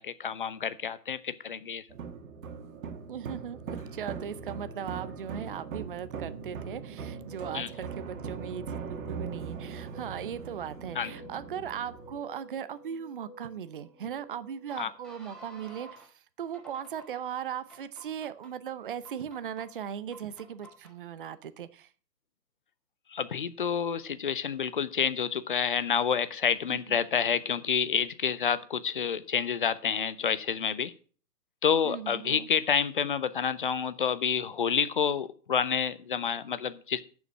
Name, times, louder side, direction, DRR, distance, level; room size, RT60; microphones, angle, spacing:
voice 1, 0.0-1.9 7.5-7.7 10.9-11.1 14.8-14.9 23.1-30.9 31.6-37.0, left 7 dB, 35° left, 16 dB, 0.6 m, -29 dB
sound 1, 1.9-12.2, right 5 dB, 55° right, 2.1 m, -40 dB
voice 2, 3.1-21.9 26.7-26.8 31.8-32.5, right 8 dB, 35° right, 13 dB, 0.6 m, -38 dB
sound 2, 7.2-16.1 16.5-17.2 17.7-18.5 19.0-19.6 20.1-20.9, equal, ahead, 1.5 m, -52 dB
9.9 x 7.2 x 7.5 m, 0.41 s
hypercardioid pair, 150°, 48 cm